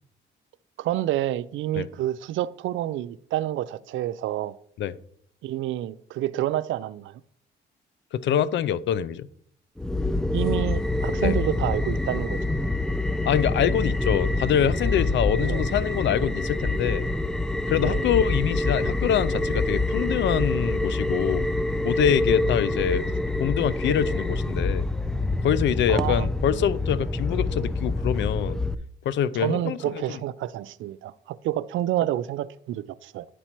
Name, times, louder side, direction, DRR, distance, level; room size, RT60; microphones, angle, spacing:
voice 1, 0.8-4.5 5.4-7.2 10.3-12.4 15.4-15.6 17.8-18.0 25.9-26.3 29.3-33.3, right 13 dB, 75° right, 0.4 m, -28 dB
voice 2, 8.1-9.3 11.2-11.4 13.3-17.1 17.7-21.5 21.8-23.1 23.4-24.9 25.4-28.6 29.0-30.2, left 9 dB, 70° left, 0.5 m, -25 dB
sound 1, 9.8-28.7, left 2 dB, 5° left, 0.4 m, -26 dB
10.0 x 4.3 x 4.5 m
cardioid pair, 90°, 20 cm